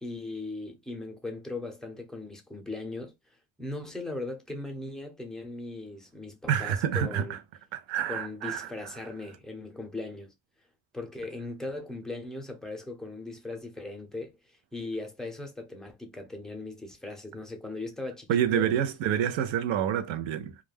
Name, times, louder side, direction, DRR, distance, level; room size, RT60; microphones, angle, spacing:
voice 1, 0.0-3.1 3.6-7.4 8.1-10.3 10.9-18.7, left 2 dB, ahead, 0.6 m, -38 dB
voice 2, 6.5-7.4 7.7-8.7 18.3-20.6, right 9 dB, 75° right, 0.6 m, -28 dB
2.4 x 2.2 x 3.3 m
cardioid pair, 105°, 46 cm